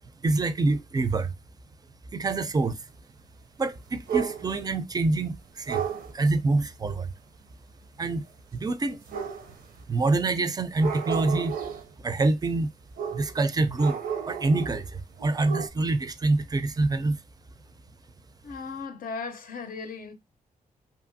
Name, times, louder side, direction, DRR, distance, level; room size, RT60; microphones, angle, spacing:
voice 1, 0.2-1.3 2.1-2.8 3.6-5.9 6.1-7.1 8.0-8.2 8.5-9.0 9.9-11.6 12.0-12.7 13.1-14.0 14.3-17.2, right 3 dB, 25° right, 0.4 m, -26 dB
sound 1, 4.1-4.7 5.7-6.1 9.1-9.8 10.7-11.9 13.0-13.4 13.8-14.9 15.2-15.7, right 8 dB, 90° right, 0.6 m, -32 dB
voice 2, 18.4-20.1, left 4 dB, 75° left, 0.6 m, -36 dB
2.7 x 2.5 x 2.6 m
cardioid pair, 90°, 15 cm